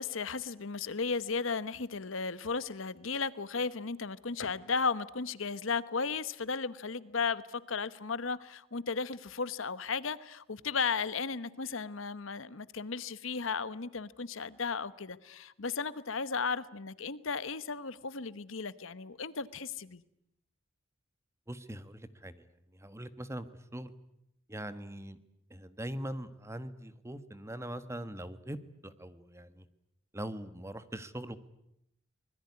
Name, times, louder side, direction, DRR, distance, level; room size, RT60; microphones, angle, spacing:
voice 1, 0.0-20.0, left 5 dB, 70° left, 16 dB, 1.1 m, -35 dB
voice 2, 21.5-22.4 22.8-23.5 23.7-23.9 24.5-25.2 25.5-28.6 28.8-29.7 30.1-31.4, right 1 dB, 15° right, 12 dB, 1.3 m, -41 dB
25.0 x 21.0 x 9.7 m, 0.80 s
head